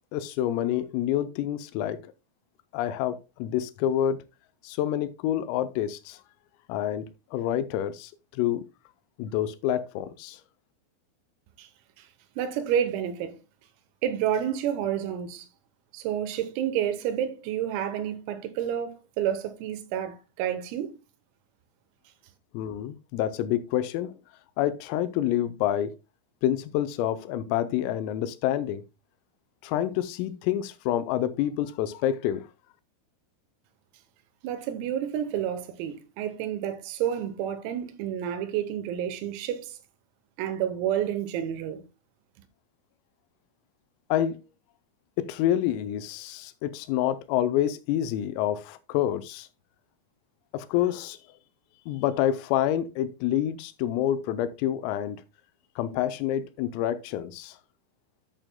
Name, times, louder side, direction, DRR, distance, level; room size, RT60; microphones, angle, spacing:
voice 1, 0.1-2.0 2.7-4.2 4.6-6.2 6.7-7.1 7.3-8.6 9.2-10.4 22.5-24.1 24.6-25.9 26.4-28.8 29.6-32.5 44.1-44.4 45.2-49.5 50.5-51.2 51.9-55.2 55.8-57.6, left 11 dB, 85° left, 3.3 m, -27 dB
voice 2, 12.4-13.4 14.0-15.5 15.9-21.0 34.4-39.8 40.4-41.8, right 10 dB, 90° right, 3.7 m, -29 dB
11.0 x 8.8 x 2.2 m
omnidirectional pair, 5.9 m